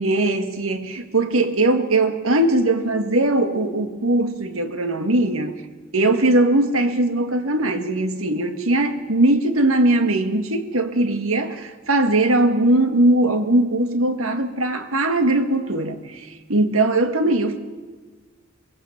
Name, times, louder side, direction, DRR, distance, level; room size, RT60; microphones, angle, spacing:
voice 1, 0.0-5.5 5.9-17.6, right 2 dB, 80° right, 1.9 m, -20 dB
23.0 x 16.5 x 7.3 m
head